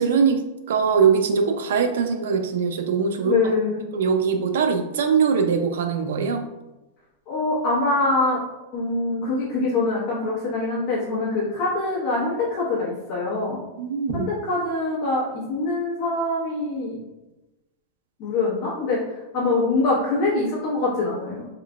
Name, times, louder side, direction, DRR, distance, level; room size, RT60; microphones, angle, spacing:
voice 1, 0.0-3.4 3.9-6.5 13.8-14.3, right 6 dB, 80° right, 6 dB, 0.5 m, -22 dB
voice 2, 3.2-3.8 7.3-8.4 8.7-13.6 14.1-17.0 18.2-19.0 19.3-21.4, left 3 dB, 30° left, -7 dB, 1.2 m, -24 dB
3.7 x 3.2 x 2.4 m, 1.0 s
supercardioid pair, 175°, 0 cm